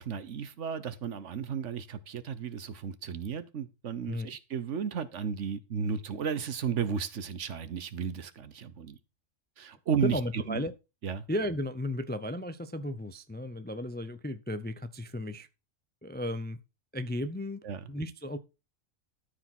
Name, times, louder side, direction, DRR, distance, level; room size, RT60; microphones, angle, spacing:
voice 1, 0.0-9.0 9.6-10.6 11.0-11.2 17.6-17.9, right 7 dB, 65° right, 1.2 m, -34 dB
voice 2, 10.0-10.7 11.3-15.5 16.0-16.6 16.9-17.6 17.9-18.4, left 1 dB, 15° left, 0.4 m, -34 dB
13.0 x 4.9 x 5.9 m
omnidirectional pair, 1.3 m